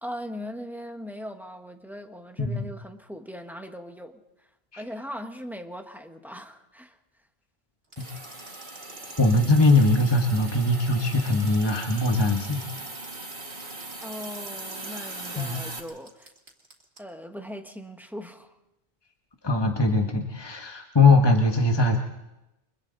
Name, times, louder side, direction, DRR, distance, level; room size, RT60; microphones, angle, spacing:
voice 1, 0.0-4.5 4.8-7.0 14.0-16.3 17.0-18.6, equal, ahead, 4 dB, 1.5 m, -39 dB
voice 2, 2.4-2.7 4.7-4.8 9.2-12.9 15.4-15.6 19.4-22.0, left 2 dB, 25° left, 2 dB, 1.6 m, -21 dB
sound 1, 7.9-17.0, right 3 dB, 75° right, 3.1 m, -48 dB
Hiss, 8.0-15.8, right 2 dB, 50° right, 2.3 m, -39 dB
29.5 x 25.0 x 4.1 m, 0.96 s
omnidirectional pair, 1.0 m